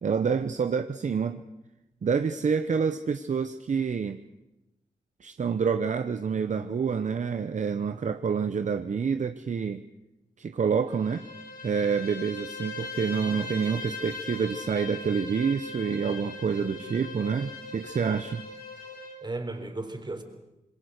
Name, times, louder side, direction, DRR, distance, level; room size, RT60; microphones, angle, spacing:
voice 1, 0.0-1.4 2.0-4.2 5.2-9.8 10.4-11.3 11.6-18.4, right 6 dB, 55° right, 9 dB, 0.9 m, -28 dB
Bowed string instrument, 10.9-19.2, left 3 dB, 85° left, 5.3 m, -40 dB
voice 2, 16.6-17.0 19.2-20.2, right 2 dB, 30° right, 6 dB, 4.0 m, -36 dB
26.5 x 21.5 x 6.6 m, 0.97 s
cardioid pair, 60°, 14 cm